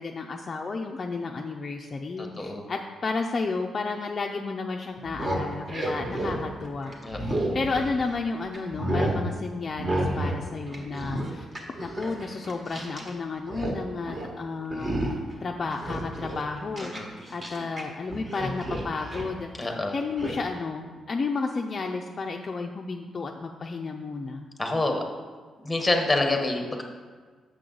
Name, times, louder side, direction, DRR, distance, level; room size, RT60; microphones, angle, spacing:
voice 1, 0.0-6.9 7.2-11.5 11.8-15.1 15.4-24.5, left 4 dB, 35° left, 2 dB, 0.4 m, -32 dB
voice 2, 2.2-2.6 7.0-7.5 16.9-17.1 19.6-19.9 24.6-25.0 25.6-26.8, left 2 dB, 10° left, 3 dB, 1.0 m, -27 dB
sound 1, 5.0-8.2 8.5-9.2 9.8-10.4 10.7-13.1 13.4-13.8 14.1-14.3 14.7-15.3 15.7-17.8 18.1-19.3 20.2-20.4, right 1 dB, 35° right, 1.3 m, -31 dB
7.7 x 6.4 x 3.8 m, 1.5 s
cardioid pair, 130°, 0 cm